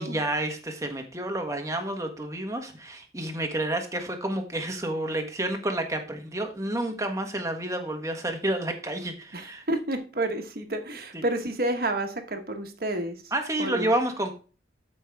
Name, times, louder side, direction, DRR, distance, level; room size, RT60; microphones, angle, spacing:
voice 1, 0.0-9.6 11.1-11.2 13.3-14.3, right 1 dB, 15° right, 4 dB, 1.3 m, -30 dB
voice 2, 9.3-13.2 13.6-13.9, right 1 dB, 55° right, 5 dB, 1.3 m, -30 dB
12.5 x 5.4 x 3.5 m, 0.37 s
head